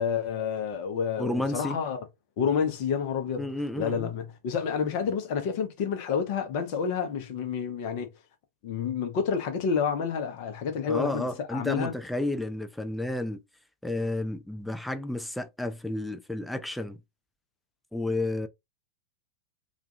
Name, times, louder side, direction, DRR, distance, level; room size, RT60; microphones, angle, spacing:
voice 1, 0.0-2.0 2.4-3.5 3.8-8.1 8.6-11.9, left 6 dB, 45° left, 0.7 m, -29 dB
voice 2, 1.2-1.8 3.4-4.1 10.9-13.4 13.8-17.0 17.9-18.5, left 1 dB, 5° left, 0.4 m, -31 dB
2.4 x 2.3 x 2.7 m
figure-of-eight pair, 90°, 0 cm